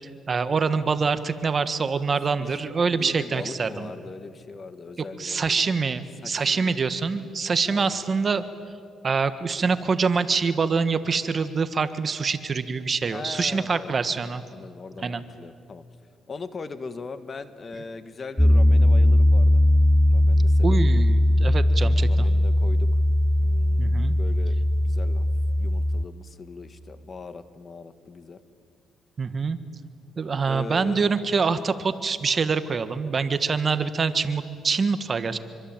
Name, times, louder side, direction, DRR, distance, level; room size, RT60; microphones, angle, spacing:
voice 1, 0.3-3.9 5.2-8.4 9.0-14.4 15.0-15.2 20.6-22.3 23.8-24.1 29.2-29.6 30.2-35.4, right 5 dB, 40° right, 11 dB, 1.5 m, -25 dB
voice 2, 2.4-5.6 6.2-6.9 7.7-7.9 13.1-14.2 14.5-15.8 16.3-19.6 20.1-20.8 21.9-22.9 23.4-24.6 24.8-28.4 30.4-31.1, left 4 dB, 40° left, 11 dB, 1.7 m, -40 dB
Piano, 18.4-26.0, left 1 dB, 5° left, 0.6 m, -19 dB
26.0 x 25.0 x 9.0 m, 2.2 s
cardioid pair, 90°, 0 cm